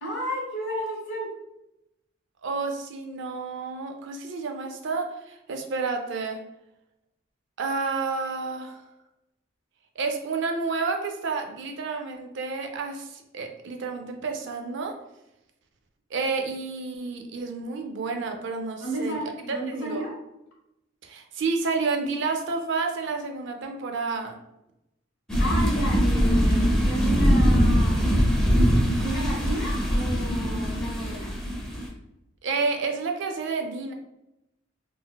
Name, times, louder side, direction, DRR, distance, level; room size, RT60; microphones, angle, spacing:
voice 1, 0.0-1.3 18.8-20.1 25.4-28.0 29.0-31.3, right 1 dB, 65° left, -2 dB, 0.9 m, -32 dB
voice 2, 2.4-6.4 7.6-8.8 10.0-14.9 16.1-19.2 19.7-20.0 21.0-24.4 32.4-33.9, right 4 dB, 60° right, 4 dB, 0.4 m, -30 dB
sound 1, 25.3-31.9, equal, 5° left, 0.5 m, -22 dB
3.8 x 2.0 x 2.2 m, 0.87 s
head